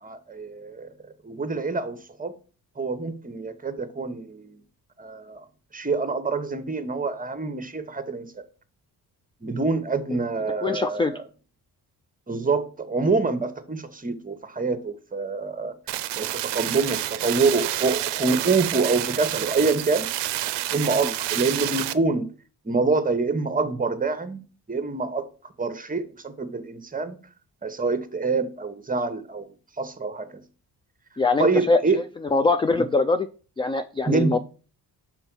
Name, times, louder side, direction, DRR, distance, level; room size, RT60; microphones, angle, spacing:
voice 1, 0.0-0.9 1.2-2.3 2.8-4.4 5.0-5.4 5.7-8.4 9.4-11.2 12.3-15.7 16.1-20.1 20.7-22.3 22.6-24.4 24.7-25.3 25.6-27.2 27.6-30.4 31.4-32.0 34.1-34.4, right 4 dB, 20° right, 0.9 m, -26 dB
voice 2, 10.6-11.1 31.2-31.8 32.3-33.3 33.6-34.4, left 3 dB, 15° left, 0.3 m, -22 dB
sound 1, 15.9-21.9, right 15 dB, 85° right, 0.6 m, -29 dB
5.4 x 4.4 x 6.0 m
cardioid pair, 85°, 41 cm